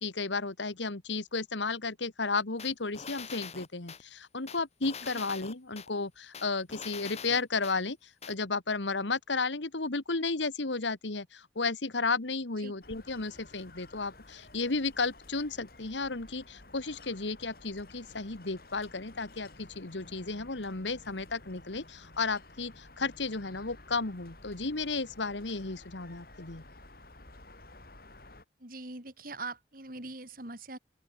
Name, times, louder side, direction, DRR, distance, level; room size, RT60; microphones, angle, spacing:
voice 1, 0.0-26.6, left 3 dB, 90° left, 1.8 m, -33 dB
sound 1, 2.6-4.0 4.5-5.9 6.3-7.8 8.2-8.3, left 6 dB, 35° left, 2.7 m, -44 dB
sound 2, 12.8-28.4, left 2 dB, 55° left, 4.5 m, -53 dB
voice 2, 28.6-30.8, right 3 dB, 50° right, 4.5 m, -42 dB
open air
head